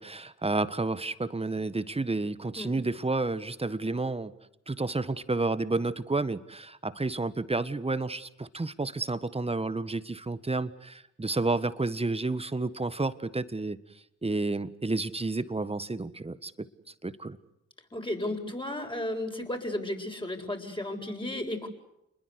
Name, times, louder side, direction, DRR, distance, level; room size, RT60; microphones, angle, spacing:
voice 1, 0.0-4.3 4.7-13.8 14.2-16.7 17.0-17.4, right 3 dB, 20° right, 14 dB, 1.6 m, -30 dB
voice 2, 17.9-21.7, left 1 dB, 15° left, 3 dB, 7.4 m, -34 dB
29.0 x 21.5 x 8.3 m, 0.80 s
hypercardioid pair, 45°, 32 cm